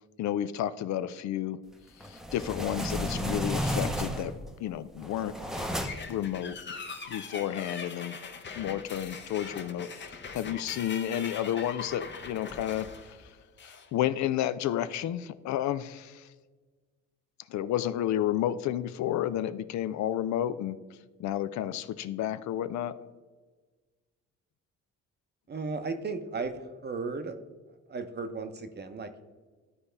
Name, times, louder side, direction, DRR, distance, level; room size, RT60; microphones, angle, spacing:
voice 1, 0.2-1.6 2.0-4.3 4.6-6.6 7.1-8.2 8.5-9.9 10.3-13.2 13.6-16.3 17.5-20.8 21.2-23.0, left 11 dB, 70° left, 14 dB, 0.4 m, -31 dB
sound 1, 2.0-4.5 5.0-6.2, equal, ahead, 0.7 m, -32 dB
sound 2, 5.6-13.9, left 4 dB, 40° left, 0.8 m, -41 dB
voice 2, 25.5-27.4 27.9-29.2, right 4 dB, 35° right, 9 dB, 0.8 m, -35 dB
12.5 x 4.2 x 3.3 m, 1.4 s
cardioid pair, 90°, 30 cm